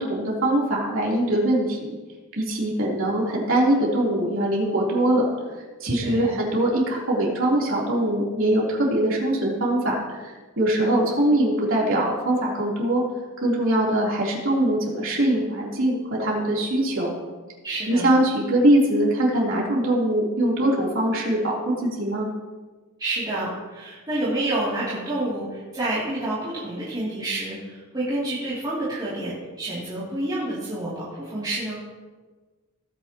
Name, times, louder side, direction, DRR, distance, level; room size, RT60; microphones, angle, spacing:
voice 1, 0.0-2.0 2.3-5.3 5.8-13.0 13.4-17.1 17.9-22.3, right 1 dB, 60° right, -4 dB, 3.5 m, -22 dB
voice 2, 6.0-6.3 17.6-18.1 23.0-31.8, right 1 dB, 20° right, -10 dB, 2.9 m, -28 dB
17.5 x 9.5 x 3.0 m, 1.3 s
head